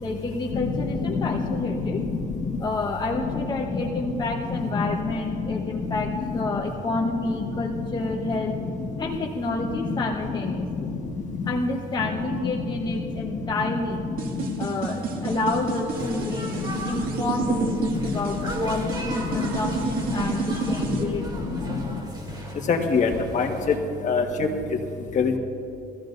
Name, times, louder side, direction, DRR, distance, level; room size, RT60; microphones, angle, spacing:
voice 1, 0.0-2.0 2.6-8.6 9.0-10.9 11.4-14.1 14.6-16.5 16.9-21.4, left 2 dB, 25° left, -1 dB, 1.1 m, -29 dB
voice 2, 1.0-1.5 3.7-3.8 4.7-4.8 22.7-23.5 24.0-24.2 25.1-25.4, left 5 dB, 45° left, 2 dB, 1.5 m, -23 dB
sound 1, 14.2-21.0, right 6 dB, 60° right, 2.1 m, -31 dB
sound 2, 15.9-23.8, right 1 dB, 25° right, 2.7 m, -37 dB
22.0 x 14.5 x 2.6 m, 2.7 s
cardioid pair, 110°, 17 cm